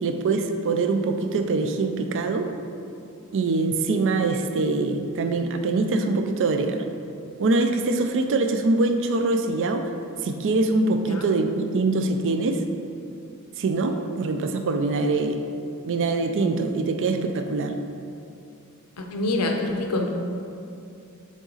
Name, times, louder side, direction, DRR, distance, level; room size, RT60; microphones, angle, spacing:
voice 1, 0.0-2.5 3.3-6.8 7.4-9.9 10.2-12.6 13.6-15.4 15.9-17.8, right 3 dB, 60° right, 6 dB, 0.4 m, -23 dB
voice 2, 19.0-20.1, left 2 dB, 90° left, 3 dB, 0.7 m, -25 dB
7.3 x 3.9 x 4.0 m, 2.6 s
head